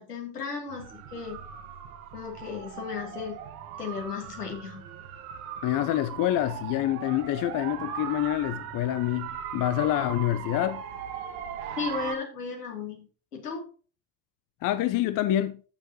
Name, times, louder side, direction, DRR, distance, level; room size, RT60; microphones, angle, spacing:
voice 1, 0.0-1.4 2.1-3.4 3.8-4.9 11.8-13.6, left 6 dB, 85° left, 2.9 m, -35 dB
sound 1, 0.7-12.2, right 9 dB, 70° right, 1.5 m, -39 dB
voice 2, 5.6-10.8 14.6-15.6, left 13 dB, 45° left, 0.8 m, -27 dB
14.5 x 6.6 x 2.9 m
hypercardioid pair, 65°, 46 cm